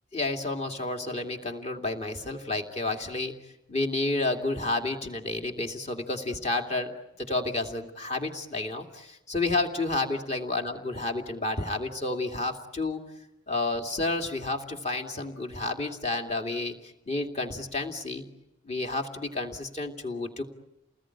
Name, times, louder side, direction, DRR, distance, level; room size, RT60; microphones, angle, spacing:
voice 1, 0.1-3.3 3.7-6.9 7.2-13.0 13.5-18.2 18.6-20.4, left 2 dB, 35° left, 4 dB, 2.6 m, -30 dB
30.0 x 20.0 x 9.9 m, 0.92 s
head